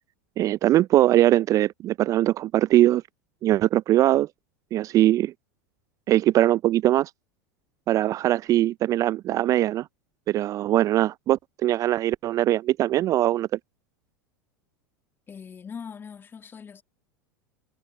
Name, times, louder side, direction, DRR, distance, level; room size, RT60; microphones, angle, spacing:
voice 1, 0.4-3.0 3.4-4.3 4.7-5.3 6.1-7.1 7.9-9.9 10.3-13.5, right 14 dB, 35° right, 0.4 m, -21 dB
voice 2, 15.3-16.8, left 6 dB, 20° left, 1.9 m, -41 dB
figure-of-eight pair, 85°, 10 cm